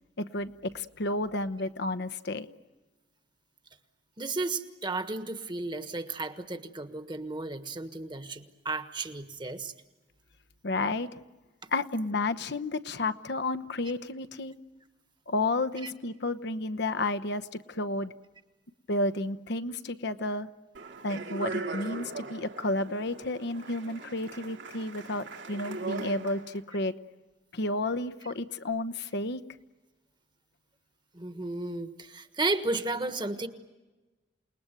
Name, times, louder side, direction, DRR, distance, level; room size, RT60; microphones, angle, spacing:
voice 1, 0.2-2.5 10.6-11.1 11.7-14.5 15.3-18.1 18.9-20.5 21.0-26.9 27.5-29.4, left 2 dB, 60° left, 12 dB, 1.0 m, -31 dB
voice 2, 4.2-9.7 15.8-15.9 31.1-33.5, right 2 dB, 25° right, 9 dB, 1.4 m, -33 dB
Speech, 20.7-26.6, right 3 dB, 75° right, 2.8 m, -39 dB
28.5 x 20.5 x 9.1 m, 1.2 s
head